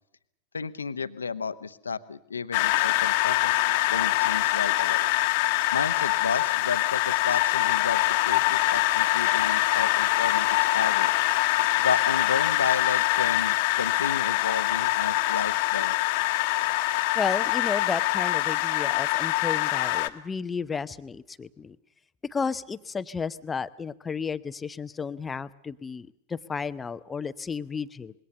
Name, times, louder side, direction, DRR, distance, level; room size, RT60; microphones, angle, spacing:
voice 1, 0.5-3.5 3.9-5.1 5.7-8.0 8.3-11.1 11.8-16.0, left 5 dB, 75° left, 13 dB, 1.1 m, -32 dB
sound 1, 2.5-20.1, left 19 dB, 50° left, 1.3 m, -24 dB
voice 2, 17.1-21.8 22.3-28.1, left 5 dB, 15° left, 14 dB, 0.8 m, -32 dB
26.0 x 22.0 x 6.8 m, 0.83 s
figure-of-eight pair, 90°, 0 cm